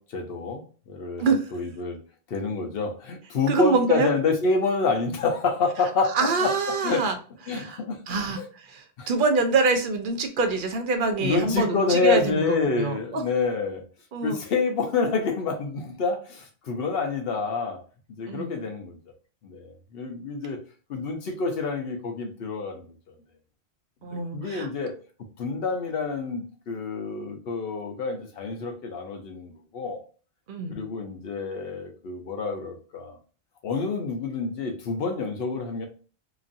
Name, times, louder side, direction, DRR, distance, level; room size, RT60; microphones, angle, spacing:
voice 1, 0.0-2.0 2.3-6.5 6.8-7.1 7.5-8.4 9.0-9.1 11.0-13.8 14.2-17.8 18.2-19.0 19.4-20.6 20.9-23.1 24.1-25.0 25.4-30.0 30.7-33.2 33.6-35.8, left 4 dB, 70° left, 4 dB, 0.9 m, -28 dB
voice 2, 3.5-4.1 6.1-7.2 7.5-7.8 8.1-13.2 14.1-14.4 18.3-18.5 24.0-24.7 30.5-30.8, right 4 dB, 60° right, 6 dB, 0.7 m, -25 dB
3.0 x 2.5 x 2.5 m, 0.38 s
omnidirectional pair, 1.0 m